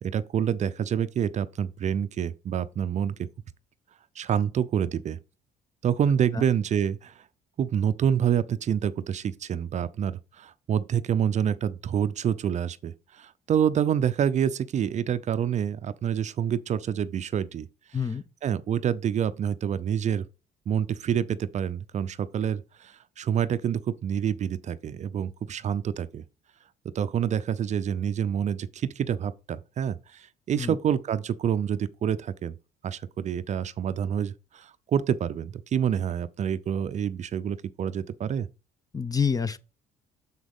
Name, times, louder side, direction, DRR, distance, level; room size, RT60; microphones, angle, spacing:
voice 1, 0.0-3.3 4.2-5.2 5.8-7.2 7.6-17.7 18.4-20.2 20.7-26.2 26.9-32.6 32.8-38.5, right 8 dB, 45° right, 0.5 m, -27 dB
voice 2, 38.9-39.6, left 6 dB, 20° left, 0.7 m, -27 dB
7.1 x 6.2 x 3.6 m
cardioid pair, 110°, 17 cm